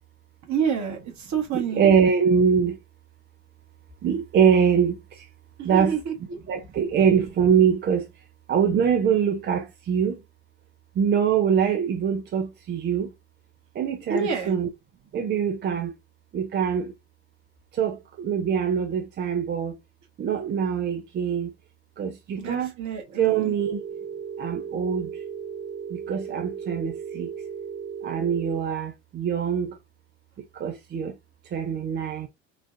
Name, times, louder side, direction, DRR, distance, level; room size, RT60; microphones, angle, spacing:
voice 1, 0.5-1.9 5.6-6.1 14.1-14.5 22.4-23.5, right 7 dB, 45° right, 1.3 m, -28 dB
voice 2, 1.5-2.8 4.0-5.2 5.6-6.0 6.5-8.1 8.5-10.2 11.0-13.1 13.8-14.7 15.1-15.9 16.3-16.9 17.7-19.8 20.2-21.5 22.0-22.7 23.1-23.8 24.4-25.2 25.9-27.3 28.0-29.8 30.5-31.1 31.5-32.3, right 7 dB, 30° right, 0.5 m, -23 dB
Telephone, 23.6-28.6, right 7 dB, 70° right, 0.8 m, -36 dB
3.8 x 2.3 x 2.5 m
hypercardioid pair, 75°, 39 cm